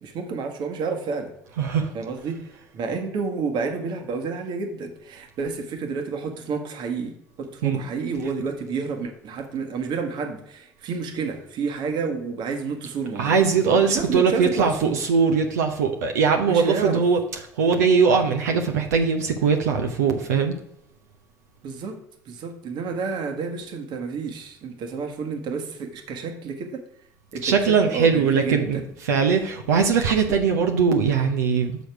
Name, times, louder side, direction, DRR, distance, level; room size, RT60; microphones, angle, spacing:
voice 1, 0.0-1.3 1.9-13.4 13.6-15.0 16.5-17.0 21.6-22.0 22.3-26.8 27.3-28.8, right 5 dB, 60° right, 5 dB, 1.4 m, -30 dB
voice 2, 1.6-1.9 7.6-7.8 13.2-17.2 17.5-20.5 27.4-31.8, right 5 dB, 85° right, 4 dB, 0.7 m, -21 dB
6.3 x 5.1 x 5.9 m, 0.77 s
hypercardioid pair, 65°, 9 cm